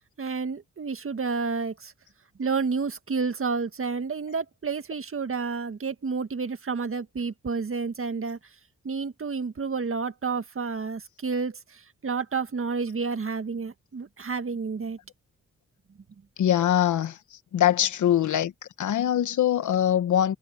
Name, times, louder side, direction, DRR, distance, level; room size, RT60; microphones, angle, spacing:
voice 1, 0.2-1.9 2.4-8.4 8.8-15.0, right 5 dB, 45° right, 1.9 m, -30 dB
voice 2, 16.4-17.2 17.5-18.5 18.8-20.3, left 11 dB, 80° left, 1.5 m, -22 dB
cardioid pair, 65°, 29 cm